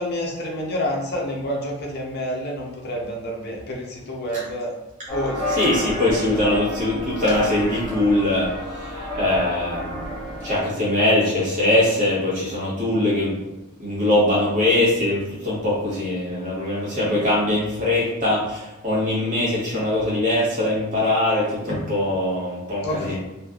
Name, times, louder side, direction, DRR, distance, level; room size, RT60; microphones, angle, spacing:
voice 1, 0.0-4.7 5.1-5.9 22.8-23.2, equal, 45° left, -1 dB, 0.6 m, -28 dB
sound 1, 5.1-10.6, left 1 dB, ahead, 0.9 m, -30 dB
voice 2, 5.5-10.1 10.4-13.3 13.8-23.2, left 1 dB, 35° right, -8 dB, 1.2 m, -22 dB
3.1 x 2.5 x 2.4 m, 0.98 s
head